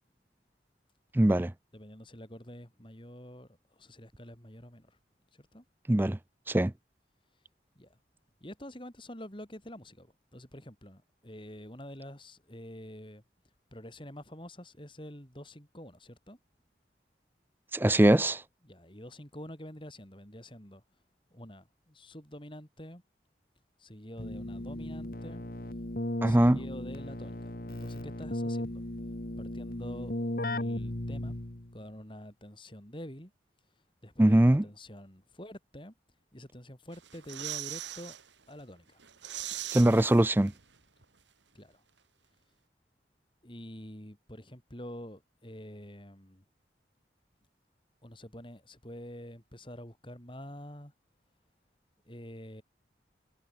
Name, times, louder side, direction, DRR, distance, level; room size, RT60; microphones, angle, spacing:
voice 1, 1.1-1.5 5.9-6.2 6.5-6.7 17.7-18.4 26.2-26.6 34.2-34.6 39.7-40.5, right 1 dB, 10° right, 0.4 m, -22 dB
voice 2, 1.7-5.0 5.3-5.6 7.7-8.0 8.4-13.2 13.7-16.4 18.6-20.8 21.3-23.0 23.8-25.4 26.2-28.9 29.4-31.4 31.7-33.3 34.0-35.9 36.3-38.2 38.5-39.3 41.5-41.8 43.4-46.4 48.0-50.9 52.0-52.6, equal, 30° left, 5.0 m, -47 dB
Keyboard (musical), 24.2-31.7, left 1 dB, 50° left, 1.8 m, -36 dB
sound 1, 36.9-38.2 38.6-38.7 39.0-40.8 41.0-41.1, right 12 dB, 85° right, 3.1 m, -40 dB
head